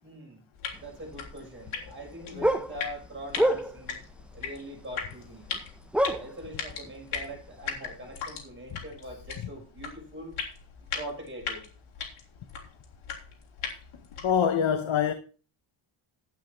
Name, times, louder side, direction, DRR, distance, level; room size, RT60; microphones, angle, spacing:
voice 1, 0.0-4.0 4.3-5.5 6.0-10.3 10.9-11.6, right 1 dB, 25° right, 6.4 m, -42 dB
sound 1, 0.5-14.5, left 6 dB, 90° left, 3.5 m, -39 dB
sound 2, 0.7-1.7 1.9-4.0 4.8-5.2 5.5-5.6 5.9-6.9 7.2-7.3 7.8-7.9, right 1 dB, ahead, 0.8 m, -27 dB
voice 2, 14.2-15.1, left 8 dB, 70° left, 1.2 m, -25 dB
12.0 x 9.1 x 4.6 m
wide cardioid pair, 140°, 48 cm